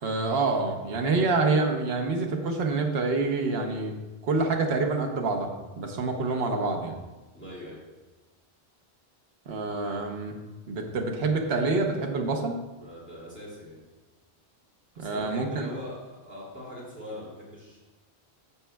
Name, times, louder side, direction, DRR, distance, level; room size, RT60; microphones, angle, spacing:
voice 1, 0.0-4.0 4.2-5.5 5.8-6.9 9.5-10.4 10.7-12.6 15.0-15.7, right 3 dB, 70° right, 2 dB, 1.1 m, -27 dB
voice 2, 7.3-7.8 12.8-13.9 15.0-17.8, left 1 dB, 10° left, -7 dB, 2.3 m, -42 dB
11.0 x 7.3 x 2.3 m, 1.2 s
omnidirectional pair, 1.1 m